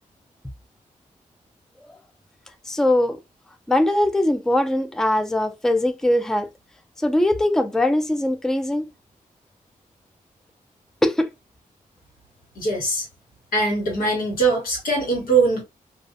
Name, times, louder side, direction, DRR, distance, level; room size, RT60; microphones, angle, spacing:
voice 1, 2.7-3.2 3.7-6.5 7.0-8.9 11.0-11.3, left 1 dB, 5° left, 0.4 m, -21 dB
voice 2, 12.5-13.1 13.5-15.6, right 3 dB, 85° left, 1.4 m, -21 dB
2.4 x 2.4 x 2.5 m
cardioid pair, 65°, 14 cm